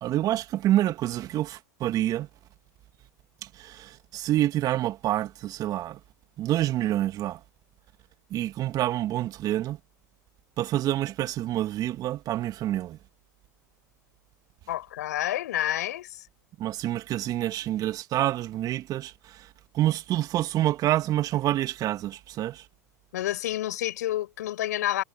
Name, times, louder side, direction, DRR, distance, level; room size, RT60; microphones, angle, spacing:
voice 1, 0.0-2.3 3.4-6.0 6.4-7.4 8.3-9.8 10.6-13.0 16.6-19.5 19.7-22.6, right 13 dB, 40° right, 2.6 m, -27 dB
voice 2, 14.7-16.3 23.1-25.0, left 13 dB, 75° left, 7.5 m, -29 dB
hypercardioid pair, 90°, 9 cm